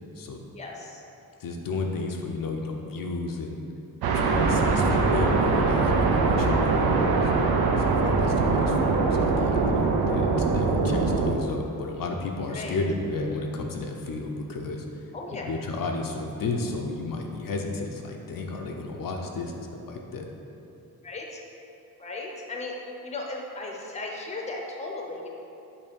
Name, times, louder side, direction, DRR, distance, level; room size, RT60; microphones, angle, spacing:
voice 1, 0.5-1.0 12.5-12.8 15.1-15.5 21.0-21.4 22.0-25.3, left 2 dB, 20° left, 0 dB, 0.6 m, -36 dB
voice 2, 1.4-3.6 4.1-6.9 7.2-7.3 7.8-15.0 15.3-20.3, left 3 dB, 65° left, 1 dB, 0.6 m, -33 dB
sound 1, 4.0-11.3, right 3 dB, 85° right, 0.6 m, -22 dB
7.0 x 2.7 x 5.1 m, 2.8 s
wide cardioid pair, 140°, 36 cm